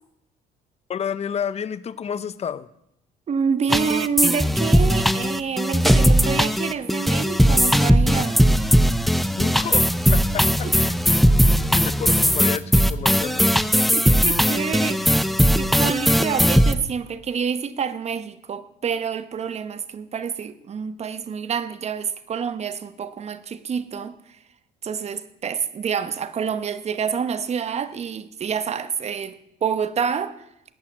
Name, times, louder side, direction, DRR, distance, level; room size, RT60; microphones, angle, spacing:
voice 1, 0.9-2.7 9.4-13.5, left 7 dB, 40° left, 0.8 m, -31 dB
voice 2, 3.3-8.4 10.6-10.8 13.9-24.4 24.8-30.4, right 6 dB, 40° right, 1.1 m, -27 dB
sound 1, 3.7-16.7, equal, ahead, 0.7 m, -18 dB
19.0 x 8.6 x 7.4 m
cardioid pair, 110°, 17 cm